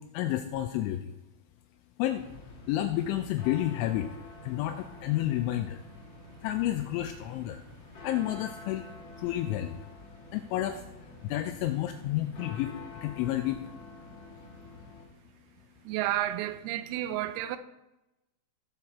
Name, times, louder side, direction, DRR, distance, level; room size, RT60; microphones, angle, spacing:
voice 1, 0.1-1.1 2.0-2.3 2.7-4.1 4.4-5.8 6.4-7.6 8.0-8.9 9.2-9.8 10.3-10.8 11.2-13.7, left 13 dB, 85° left, 2.7 m, -30 dB
sound 1, 2.2-15.1, left 3 dB, 60° left, 1.2 m, -48 dB
voice 2, 15.9-17.6, right 13 dB, 90° right, 3.4 m, -31 dB
16.5 x 6.9 x 4.2 m
omnidirectional pair, 5.9 m